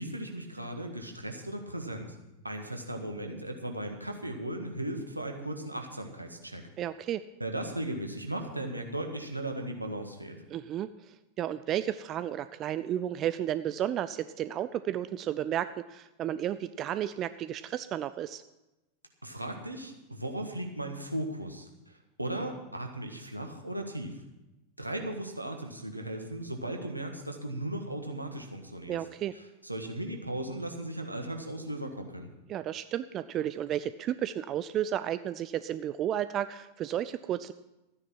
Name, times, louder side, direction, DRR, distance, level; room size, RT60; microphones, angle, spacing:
voice 1, 0.0-2.2 2.4-6.7 7.4-10.4 19.2-24.2 24.8-29.0 29.6-32.3, right 1 dB, 85° right, 4 dB, 1.6 m, -37 dB
voice 2, 6.8-7.2 10.5-18.4 28.9-29.3 32.5-37.5, right 11 dB, 30° right, 14 dB, 0.4 m, -33 dB
13.5 x 9.7 x 5.9 m, 0.99 s
figure-of-eight pair, 90°, 0 cm